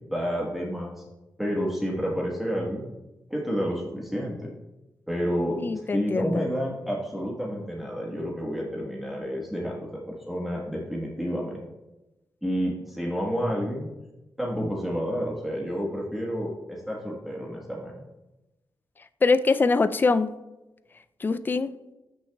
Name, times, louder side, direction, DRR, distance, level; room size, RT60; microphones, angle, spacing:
voice 1, 0.1-0.9 1.4-2.9 3.3-4.5 5.1-5.6 5.9-11.6 12.4-13.9 14.4-17.9, equal, ahead, -4 dB, 1.3 m, -30 dB
voice 2, 5.6-6.5 19.2-20.3 21.2-21.7, left 3 dB, 25° left, 12 dB, 0.3 m, -23 dB
12.5 x 6.2 x 2.3 m, 1.0 s
wide cardioid pair, 100°, 8 cm